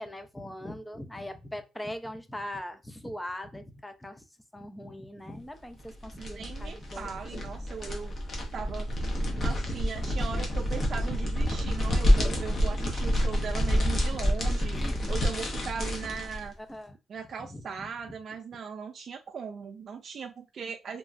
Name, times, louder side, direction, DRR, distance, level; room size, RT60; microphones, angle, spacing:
voice 1, 0.0-4.2 4.5-7.1 9.2-9.5 14.7-15.2 16.7-17.0 17.5-17.6, left 1 dB, 10° left, 0.4 m, -40 dB
sound 1, 5.8-16.5, equal, 45° left, 0.9 m, -28 dB
voice 2, 6.2-8.2 8.5-8.9 9.4-14.8 15.1-16.5 17.1-21.0, right 6 dB, 55° right, 0.3 m, -39 dB
2.9 x 2.3 x 2.5 m
cardioid pair, 90°, 0 cm